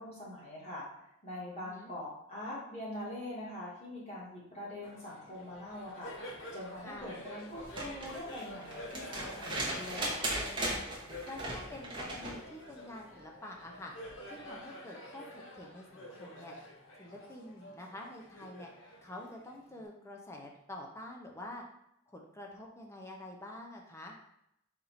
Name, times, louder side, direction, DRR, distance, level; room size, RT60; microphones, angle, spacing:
voice 1, 0.0-6.3 6.5-10.3, left 1 dB, 30° left, -7 dB, 1.6 m, -43 dB
voice 2, 1.6-1.9 6.8-7.2 11.3-13.9 14.3-16.5 17.0-18.7 19.0-21.6 22.1-24.2, left 1 dB, 15° left, 0 dB, 0.5 m, -47 dB
Laughter, 4.8-19.8, left 1 dB, 65° left, 0.9 m, -48 dB
sound 1, 7.6-12.4 14.1-14.2, right 1 dB, 25° right, 0.8 m, -37 dB
4.3 x 2.6 x 4.0 m, 0.79 s
head